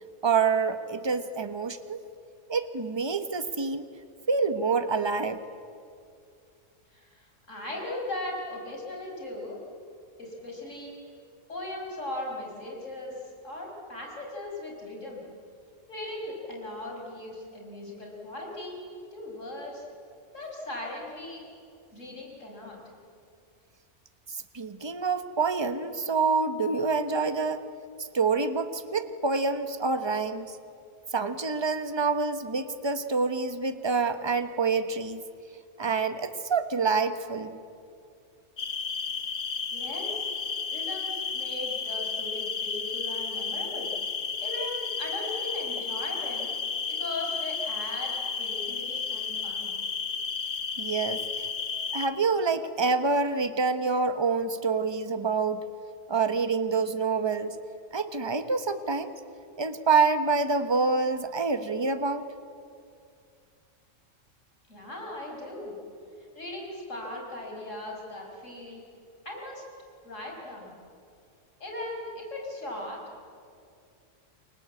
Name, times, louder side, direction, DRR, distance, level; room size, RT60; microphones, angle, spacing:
voice 1, 0.2-2.0 2.5-3.8 4.3-5.4 24.3-27.6 28.1-30.5 31.1-35.2 35.8-37.6 50.8-51.2 51.9-55.6 56.1-57.6 57.9-59.1 59.6-62.2, right 4 dB, 20° right, 9 dB, 1.2 m, -27 dB
voice 2, 6.9-9.6 10.2-10.9 11.5-15.2 15.9-18.8 19.1-19.9 20.3-21.4 21.9-22.8 39.7-40.3 40.7-43.9 44.4-46.5 46.9-49.8 64.7-65.8 66.3-68.8 69.2-69.6 70.0-70.7 71.6-73.0, left 1 dB, 85° left, -1 dB, 6.1 m, -38 dB
sound 1, 38.6-52.1, left 5 dB, 60° left, 1.5 m, -32 dB
29.0 x 23.5 x 8.5 m, 2.4 s
omnidirectional pair, 1.3 m